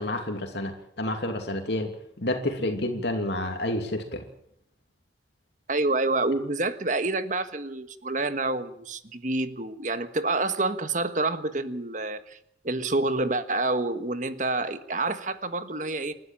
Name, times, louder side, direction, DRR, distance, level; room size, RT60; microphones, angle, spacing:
voice 1, 0.0-1.9 2.2-4.2, left 1 dB, 70° left, 4 dB, 2.8 m, -29 dB
voice 2, 5.7-12.4 12.6-16.1, right 2 dB, 45° right, 10 dB, 1.5 m, -28 dB
29.0 x 12.5 x 9.0 m, 0.74 s
head